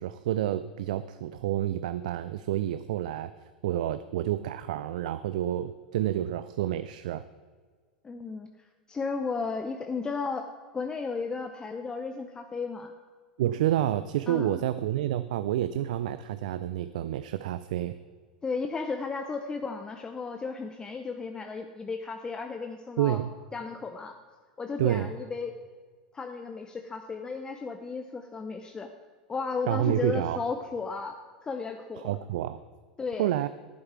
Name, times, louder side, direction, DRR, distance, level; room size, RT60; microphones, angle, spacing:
voice 1, 0.0-3.3 3.6-7.2 13.4-17.9 23.0-23.3 24.8-25.1 29.7-30.4 32.0-32.6 33.2-33.5, right 12 dB, 60° right, 13 dB, 0.4 m, -29 dB
voice 2, 8.0-8.5 8.9-12.9 14.3-14.6 18.4-23.2 23.5-24.2 24.6-25.5 26.1-28.9 29.3-32.0 33.0-33.3, left 4 dB, 15° left, 6 dB, 0.7 m, -34 dB
11.0 x 11.0 x 4.7 m, 1.6 s
figure-of-eight pair, 90°, 5 cm